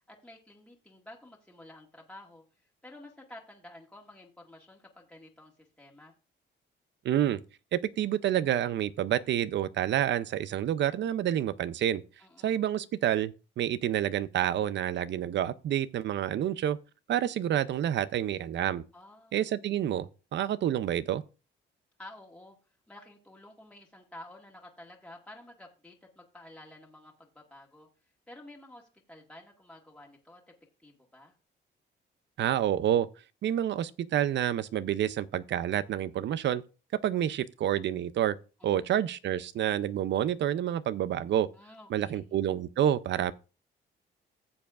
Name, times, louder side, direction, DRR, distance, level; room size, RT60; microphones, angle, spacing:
voice 1, 0.1-2.4 2.8-6.2 12.2-12.5 18.9-19.4 22.0-22.6 22.9-27.9 28.3-30.5 30.8-31.3 38.6-38.9 41.5-42.4, left 1 dB, 5° left, 1.8 m, -51 dB
voice 2, 7.0-7.4 7.7-12.0 12.4-16.8 17.1-18.8 19.3-21.2 32.4-33.1 33.4-36.6 37.0-38.4 38.6-41.5 41.9-43.3, right 11 dB, 65° right, 0.6 m, -28 dB
15.0 x 7.2 x 2.5 m
cardioid pair, 90°, 20 cm